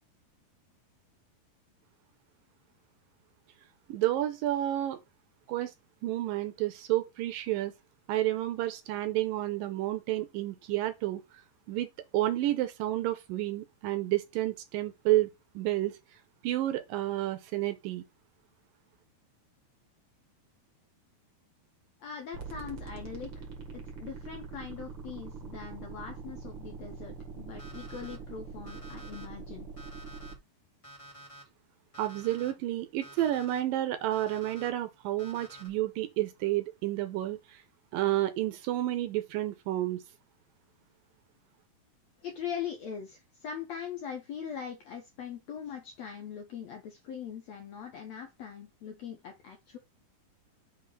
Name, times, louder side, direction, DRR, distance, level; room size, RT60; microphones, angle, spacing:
voice 1, 3.9-5.0 5.5-5.7 6.0-7.7 8.1-11.2 11.7-15.3 15.6-16.0 16.4-18.0 32.0-37.6 37.9-40.0, right 14 dB, 80° right, 2.2 m, -30 dB
voice 2, 22.0-23.5 23.7-29.7 42.2-49.8, left 7 dB, 85° left, 1.5 m, -41 dB
sound 1, 22.3-30.4, right 5 dB, 50° right, 1.8 m, -43 dB
Alarm, 27.6-28.2 28.7-29.2 29.8-30.3 30.8-31.4 31.9-32.5 33.0-33.6 34.1-34.7 35.2-35.7, right 1 dB, 55° left, 0.3 m, -50 dB
5.5 x 4.0 x 5.4 m
omnidirectional pair, 4.4 m